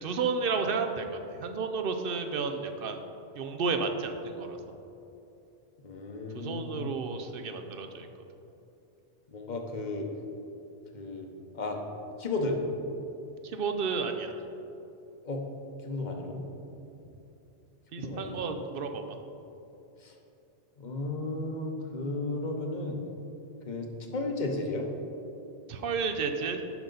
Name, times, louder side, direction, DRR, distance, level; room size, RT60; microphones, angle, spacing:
voice 1, 0.0-3.0 3.3-4.6 6.3-8.1 13.4-14.4 17.9-19.0 25.7-26.6, right 5 dB, 60° right, 6 dB, 0.7 m, -32 dB
voice 2, 5.8-7.0 9.3-10.1 10.9-11.3 11.5-11.8 12.2-12.6 15.3-15.4 15.8-16.4 18.0-18.6 20.0-20.1 20.8-23.0 23.7-24.9, left 2 dB, 45° left, 3 dB, 0.9 m, -34 dB
10.5 x 5.6 x 3.9 m, 2.9 s
omnidirectional pair, 1.2 m